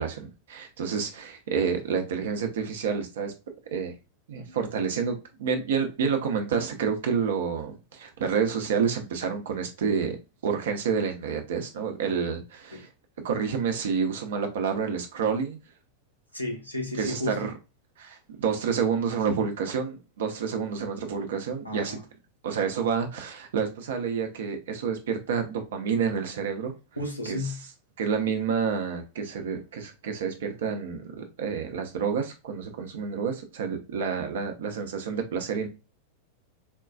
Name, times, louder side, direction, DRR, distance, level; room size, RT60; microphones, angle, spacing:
voice 1, 0.0-3.3 3.7-3.9 4.3-10.2 10.4-12.9 13.2-15.6 17.0-17.5 18.0-22.0 22.4-26.7 27.3-27.4 28.0-35.7, right 6 dB, 60° right, 0.7 m, -29 dB
voice 2, 16.3-17.5 21.6-22.0 27.0-27.6, left 1 dB, 85° left, 0.9 m, -33 dB
4.3 x 2.3 x 2.3 m
figure-of-eight pair, 90°, 0 cm